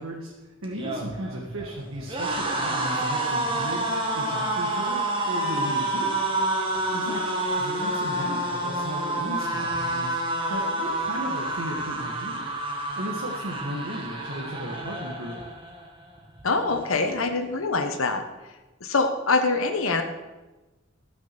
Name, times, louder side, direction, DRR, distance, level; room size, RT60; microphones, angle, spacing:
voice 1, 0.0-6.2 6.9-12.5 13.0-15.5, equal, 85° right, -2 dB, 1.7 m, -35 dB
sound 1, 0.6-15.8 16.2-16.4 16.7-17.5, right 1 dB, 25° right, 1.6 m, -28 dB
voice 2, 16.4-18.2 18.8-20.0, left 3 dB, 90° left, 5 dB, 1.2 m, -24 dB
13.5 x 6.3 x 6.9 m, 1.1 s
head